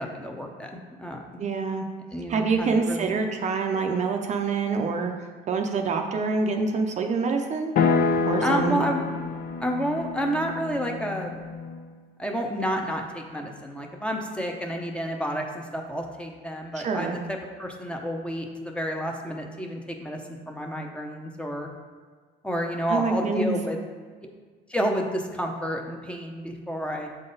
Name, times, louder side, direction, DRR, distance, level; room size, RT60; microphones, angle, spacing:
voice 1, 0.0-1.4 2.1-3.1 8.4-9.0 9.6-11.4 12.2-21.7 22.4-23.8 24.7-27.1, equal, 5° left, 1 dB, 0.7 m, -30 dB
voice 2, 1.4-1.8 2.3-5.1 5.5-7.7 8.3-8.8 16.7-17.2 22.9-23.6, right 4 dB, 45° right, 4 dB, 0.6 m, -26 dB
sound 1, 7.8-11.9, left 4 dB, 55° left, 0.5 m, -27 dB
7.4 x 3.9 x 3.9 m, 1.5 s
cardioid pair, 110°, 17 cm